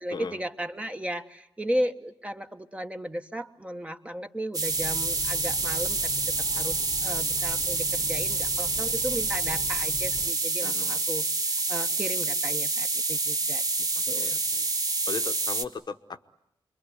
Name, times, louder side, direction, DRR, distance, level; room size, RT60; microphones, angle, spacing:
voice 1, 0.0-6.1 6.5-11.3 11.7-13.6 14.1-14.4, equal, 15° right, 7 dB, 1.3 m, -35 dB
sound 1, 4.5-15.6, right 3 dB, 40° right, 1.7 m, -27 dB
Train, 4.6-10.3, left 2 dB, 25° left, 1.2 m, -42 dB
voice 2, 10.6-11.0 14.1-14.7 15.1-16.2, left 5 dB, 50° left, 8 dB, 1.0 m, -37 dB
26.5 x 23.0 x 9.9 m, 0.81 s
wide cardioid pair, 100°, 9 cm